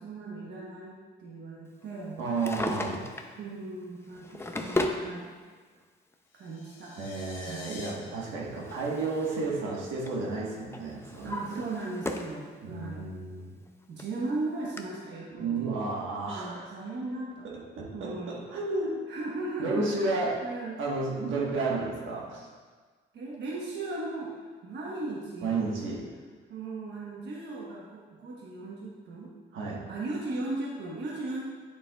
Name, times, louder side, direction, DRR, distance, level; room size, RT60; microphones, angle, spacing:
voice 1, 0.0-2.2 3.3-5.4 6.3-6.9 7.4-7.7 8.1-8.2 11.2-13.1 13.9-15.9 16.3-17.5 17.9-18.4 19.1-20.8 23.1-25.6 26.5-29.3 29.9-31.4, right 2 dB, 60° right, -4 dB, 1.2 m, -37 dB
Drawer open or close, 2.2-3.4 4.1-5.1 6.1-6.2 8.0-9.5 9.8-10.2 10.7-12.4 12.8-12.9 13.7-13.8 14.0-14.1 14.8-14.9, left 2 dB, 10° left, 0.5 m, -35 dB
voice 2, 2.2-3.0 7.0-11.6 12.6-13.5 15.4-16.7 17.4-19.0 19.6-20.4 20.8-22.5 25.4-26.1 29.5-29.8, right 3 dB, 80° right, -3 dB, 1.4 m, -32 dB
sound 1, 6.3-7.9, left 5 dB, 80° left, 1.1 m, -47 dB
8.3 x 6.9 x 2.3 m, 1.5 s
cardioid pair, 90°, 20 cm